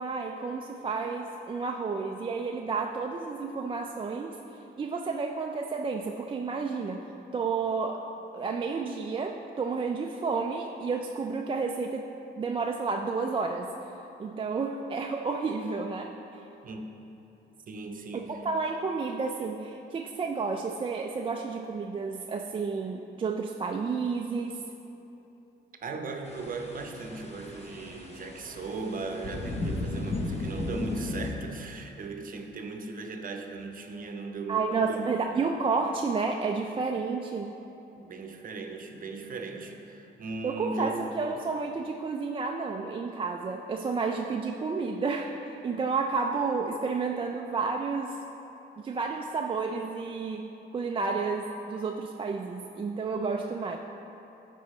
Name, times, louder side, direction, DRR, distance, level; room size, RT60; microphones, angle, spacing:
voice 1, 0.0-4.4 4.8-7.0 7.3-8.0 8.3-12.1 12.4-13.7 14.2-16.4 18.1-24.6 34.5-37.5 40.4-48.2 48.8-53.8, right 4 dB, 25° right, 2 dB, 0.3 m, -31 dB
voice 2, 17.7-18.4 25.8-35.2 38.0-41.1, right 3 dB, 45° right, 4 dB, 0.8 m, -38 dB
sound 1, 26.3-31.3, left 2 dB, 35° left, 1.0 m, -35 dB
13.5 x 4.5 x 3.1 m, 3.0 s
cardioid pair, 90°, 20 cm